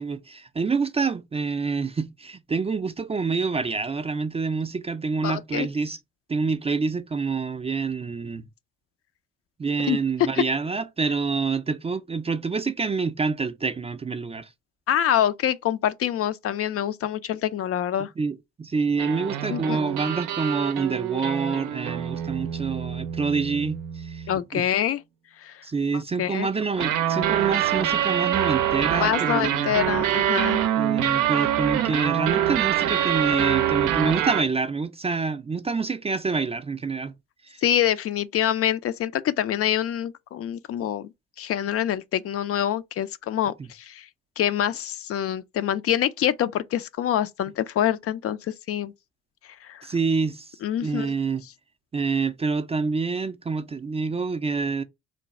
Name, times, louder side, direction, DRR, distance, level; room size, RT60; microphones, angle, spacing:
voice 1, 0.0-6.0 6.3-8.4 9.6-14.5 18.2-24.2 24.5-24.7 25.6-29.7 30.8-37.1 37.5-37.6 49.8-50.5 50.8-51.4 51.9-54.8, right 4 dB, 20° right, 0.4 m, -27 dB
voice 2, 5.2-5.7 9.9-10.0 10.3-10.4 14.9-18.1 19.5-19.8 24.3-25.0 25.4-25.6 26.2-26.5 29.0-30.6 37.6-41.1 41.4-44.1 44.4-48.9 49.4-49.9 50.6-51.1 51.4-51.5, left 11 dB, 45° left, 0.4 m, -26 dB
sound 1, 19.0-24.4 26.6-34.4, right 11 dB, 70° right, 0.5 m, -25 dB
3.2 x 2.2 x 3.9 m
hypercardioid pair, 55°, 33 cm